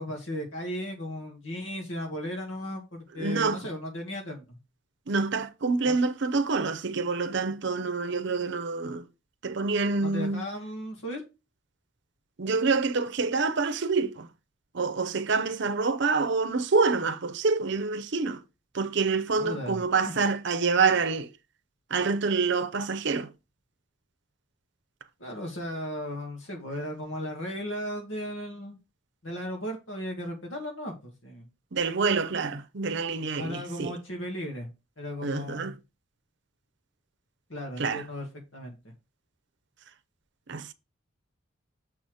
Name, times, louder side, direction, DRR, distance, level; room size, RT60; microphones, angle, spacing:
voice 1, 0.0-4.6 5.8-5.9 10.0-11.2 19.3-19.8 20.1-20.2 25.2-28.8 29.2-31.5 33.4-34.7 35.0-35.7 37.5-38.3 38.5-38.8, equal, 70° left, 2.0 m, -36 dB
voice 2, 3.2-3.6 5.1-9.1 9.4-10.5 12.4-14.3 14.7-18.4 18.7-21.3 21.9-23.3 31.7-33.9 35.2-35.8 37.8-38.0 40.5-40.7, right 4 dB, 60° right, 0.7 m, -27 dB
7.1 x 4.2 x 4.8 m
head